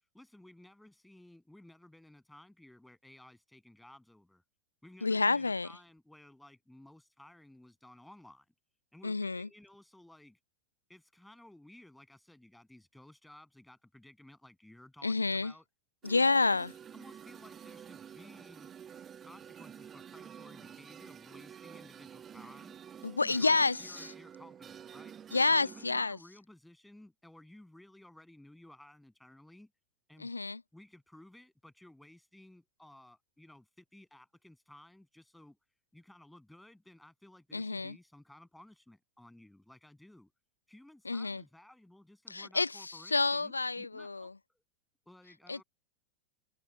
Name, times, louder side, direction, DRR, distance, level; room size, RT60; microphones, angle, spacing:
voice 1, 0.1-4.4 4.8-8.5 8.9-10.4 10.9-15.7 16.9-18.7 19.2-22.8 23.2-25.1 25.5-29.7 30.1-30.3 30.7-35.6 35.9-40.3 40.7-44.6 45.1-45.6, left 1 dB, 5° left, 7.9 m, -56 dB
voice 2, 5.0-5.7 9.0-9.5 15.0-15.5 16.0-16.7 23.0-24.1 25.3-26.2 30.2-30.6 37.5-37.9 41.1-41.4 42.3-44.3 45.5-45.6, left 3 dB, 80° left, 0.6 m, -29 dB
sound 1, 16.0-26.0, right 8 dB, 25° right, 2.3 m, -50 dB
figure-of-eight pair, 90°, 0 cm